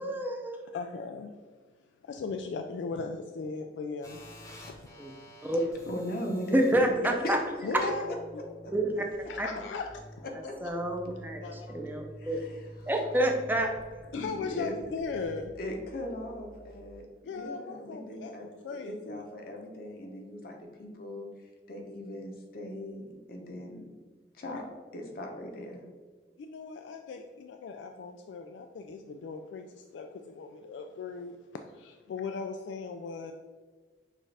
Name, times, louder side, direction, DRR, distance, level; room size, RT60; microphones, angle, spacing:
voice 1, 0.0-0.6 5.0-5.1 5.4-5.6 6.5-7.4 8.7-9.1 9.4-9.5 10.6-12.4 12.9-13.7, right 1 dB, 10° right, 2 dB, 0.5 m, -28 dB
voice 2, 0.7-1.4 2.0-4.2 4.6-4.8 7.6-8.1 9.3-10.2 11.4-11.8 14.1-15.5 17.3-19.2 26.4-33.3, left 4 dB, 80° left, 5 dB, 0.3 m, -38 dB
sound 1, 4.0-16.9, equal, 20° left, 0.8 m, -50 dB
voice 3, 5.9-7.3 7.6-8.2 8.6-8.7 10.4-10.5 12.2-12.6 14.1-14.7 15.6-18.5 18.9-21.3 21.7-23.9 24.3-24.6 24.9-25.8, left 1 dB, 55° left, 1 dB, 0.8 m, -38 dB
6.4 x 2.5 x 3.2 m, 1.4 s
head